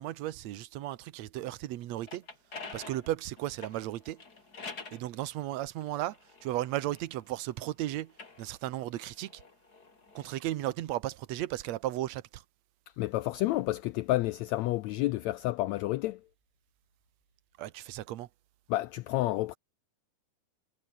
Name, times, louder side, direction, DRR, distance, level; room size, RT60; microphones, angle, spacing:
voice 1, 0.0-2.2 2.7-4.2 4.9-8.1 8.4-9.4 10.2-12.4 17.6-18.3, right 14 dB, 65° right, 2.0 m, -35 dB
sound 1, 1.8-5.1 5.8-7.5 8.0-10.3, left 4 dB, 30° left, 3.3 m, -47 dB
voice 2, 13.0-16.2 18.7-19.6, left 17 dB, 85° left, 1.6 m, -30 dB
omnidirectional pair, 3.8 m